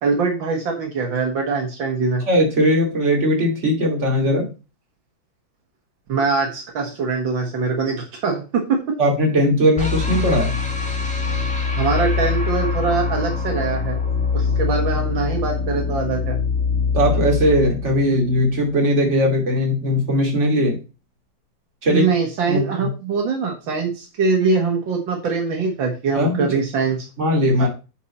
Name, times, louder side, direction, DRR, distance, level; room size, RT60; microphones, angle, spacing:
voice 1, 0.0-2.2 6.1-9.0 11.8-14.0 14.3-16.4 21.9-27.1 27.6-27.7, right 4 dB, 80° right, 2 dB, 2.3 m, -23 dB
voice 2, 2.3-4.5 9.0-10.5 16.9-20.8 21.8-22.1 22.5-22.9 26.1-26.5 27.2-27.7, equal, 35° right, 0 dB, 2.8 m, -19 dB
sound 1, 9.8-18.9, left 5 dB, 5° left, 1.5 m, -23 dB
9.4 x 4.6 x 4.2 m, 0.30 s
omnidirectional pair, 2.0 m